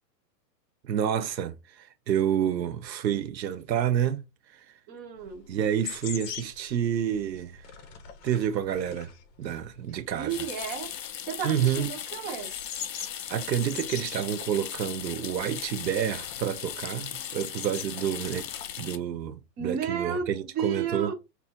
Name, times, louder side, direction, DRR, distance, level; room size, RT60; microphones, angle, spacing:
voice 1, 0.8-4.2 4.5-4.6 5.5-7.6 8.2-9.1 9.4-10.3 11.4-11.9 13.3-18.5 18.8-21.1, right 9 dB, 85° right, 0.9 m, -29 dB
voice 2, 4.9-5.5 10.2-10.9 11.2-12.5 19.6-21.1, right 7 dB, 20° right, 0.8 m, -33 dB
sound 1, 5.2-18.8, left 8 dB, 45° left, 1.0 m, -43 dB
sound 2, 10.3-19.0, left 10 dB, 75° left, 0.9 m, -38 dB
5.9 x 2.8 x 3.0 m
hypercardioid pair, 145°, 50 cm